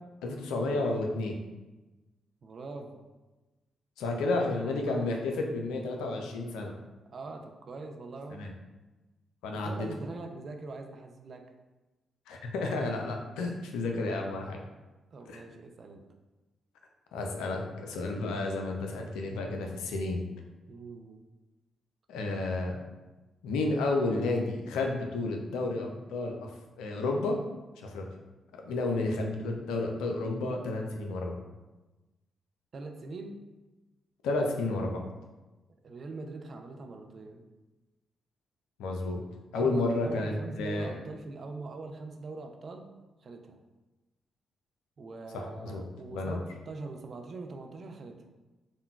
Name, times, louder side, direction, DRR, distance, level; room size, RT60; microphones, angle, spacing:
voice 1, 0.2-1.4 4.0-6.7 8.3-8.5 9.4-9.9 12.3-14.6 15.3-15.4 17.1-20.2 22.1-22.8 23.4-26.5 26.8-27.4 27.8-28.0 28.7-31.4 34.2-35.1 38.8-39.2 39.5-40.9 45.3-45.8 46.1-46.4, left 2 dB, 75° left, 2 dB, 0.3 m, -31 dB
voice 2, 2.4-3.0 4.3-5.1 7.1-8.4 9.5-11.4 15.1-16.0 20.7-21.2 32.7-33.4 35.8-37.4 39.5-42.9 43.2-43.6 45.0-48.2, right 3 dB, 50° right, 4 dB, 0.4 m, -42 dB
3.7 x 2.1 x 2.3 m, 1.1 s
hypercardioid pair, 40°, 0 cm